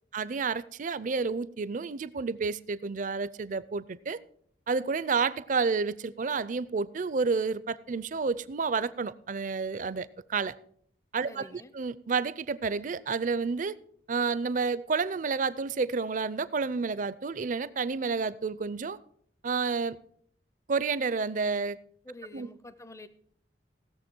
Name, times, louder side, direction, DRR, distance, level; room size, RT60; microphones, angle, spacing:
voice 1, 0.1-4.2 4.7-10.5 11.1-13.7 14.1-19.0 19.4-20.0 20.7-21.8 22.3-22.5, right 4 dB, 45° right, 0.5 m, -30 dB
voice 2, 11.2-11.7 22.0-23.1, left 2 dB, 15° left, 0.5 m, -47 dB
17.5 x 6.9 x 4.5 m
head